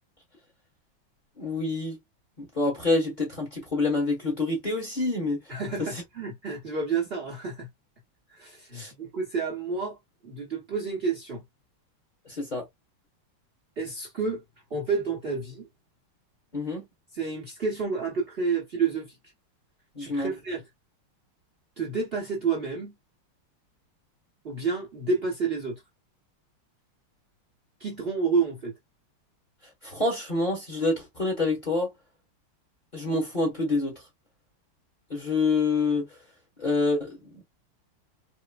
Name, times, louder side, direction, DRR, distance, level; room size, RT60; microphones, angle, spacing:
voice 1, 1.4-2.0 2.4-5.4 5.8-5.9 8.7-8.9 12.3-12.7 16.5-16.9 19.9-20.3 29.8-31.9 32.9-33.9 35.1-36.1 36.6-37.4, left 3 dB, 30° left, 1.0 m, -27 dB
voice 2, 5.5-7.7 8.3-10.0 10.2-11.4 13.8-14.4 14.7-15.7 17.1-19.2 20.0-20.6 21.8-22.9 24.4-25.8 27.8-28.7, right 4 dB, 45° right, 0.8 m, -29 dB
4.3 x 2.1 x 2.2 m
omnidirectional pair, 2.3 m